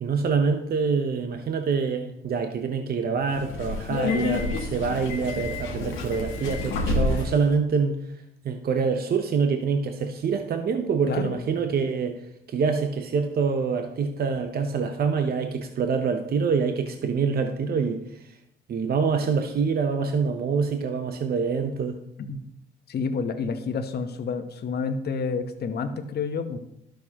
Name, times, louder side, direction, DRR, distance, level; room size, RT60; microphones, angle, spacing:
voice 1, 0.0-8.0 8.4-12.2 12.5-18.0 18.7-22.0, right 5 dB, 50° right, 6 dB, 0.8 m, -25 dB
Subway metro underground, 3.2-7.5, left 3 dB, 90° left, 1.2 m, -28 dB
voice 2, 22.9-26.6, left 5 dB, 55° left, 6 dB, 0.9 m, -29 dB
12.0 x 6.4 x 2.9 m, 0.78 s
cardioid pair, 90°, 20 cm